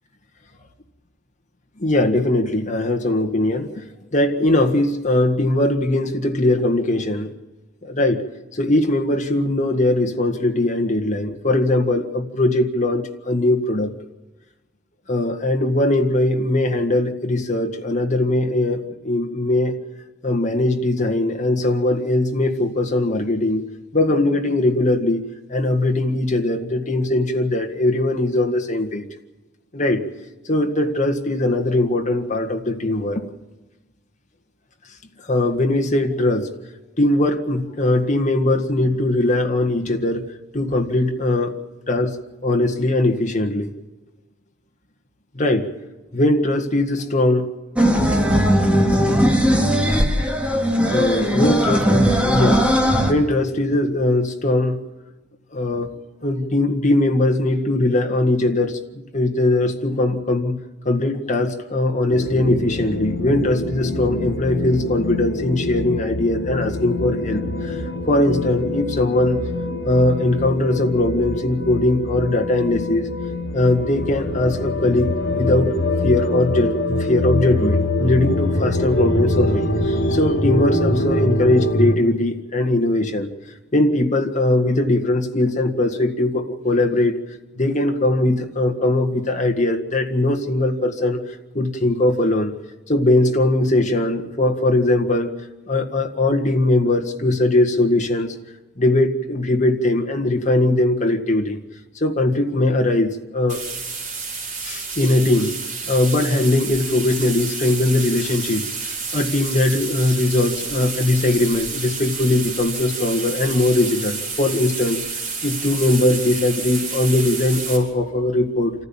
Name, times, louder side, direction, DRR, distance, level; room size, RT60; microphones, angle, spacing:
voice 1, 1.8-3.7 4.1-7.3 7.8-8.2 8.5-13.9 15.1-19.7 20.2-23.6 23.9-25.2 25.5-29.1 29.7-30.0 30.5-33.2 35.3-36.5 37.0-40.3 40.5-42.2 42.4-43.7 45.3-45.7 46.1-47.5 48.4-48.5 50.9-52.7 53.1-54.8 55.5-55.9 56.2-58.8 59.1-60.6 60.9-67.8 68.1-69.4 69.9-73.1 73.5-75.7 76.0-83.3 83.7-87.2 87.6-91.2 91.5-92.5 92.9-95.3 95.7-98.3 98.8-101.6 102.0-103.6 104.6-105.6 105.9-108.7 109.1-118.7, left 1 dB, 40° left, 3 dB, 1.8 m, -20 dB
sound 1, 47.8-53.1, equal, 5° right, 2.3 m, -18 dB
sound 2, 62.1-82.0, left 1 dB, 65° left, 2.8 m, -24 dB
sound 3, 103.5-117.8, right 4 dB, 40° right, 6.0 m, -30 dB
27.5 x 15.0 x 7.3 m, 1.1 s
head